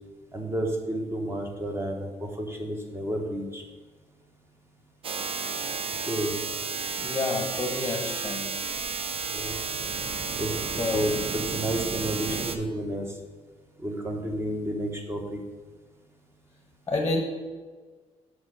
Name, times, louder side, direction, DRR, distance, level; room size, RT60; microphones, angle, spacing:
voice 1, 0.3-3.6 6.1-6.3 9.3-9.5 10.4-13.2 13.8-15.4, right 1 dB, 20° right, 2 dB, 1.2 m, -31 dB
sound 1, 5.0-12.6, right 4 dB, 50° right, 0.7 m, -32 dB
voice 2, 7.0-8.5 10.8-11.0 16.9-17.2, left 3 dB, 20° left, 2 dB, 1.0 m, -28 dB
6.3 x 4.8 x 6.4 m, 1.4 s
cardioid pair, 135°, 12 cm